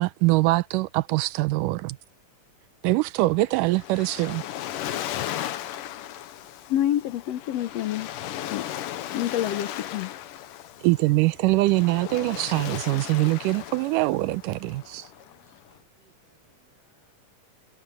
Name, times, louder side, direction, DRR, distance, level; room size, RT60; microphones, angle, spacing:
voice 1, 0.0-2.0 2.8-4.4 10.8-15.0, right 19 dB, 85° right, 2.2 m, -23 dB
Waves surf, 3.3-15.7, left 12 dB, 85° left, 2.7 m, -36 dB
voice 2, 6.7-8.1 8.5-8.7 9.1-10.1, left 12 dB, 70° left, 1.6 m, -27 dB
voice 3, 14.7-17.1, right 5 dB, 60° right, 1.1 m, -65 dB
omnidirectional pair, 3.7 m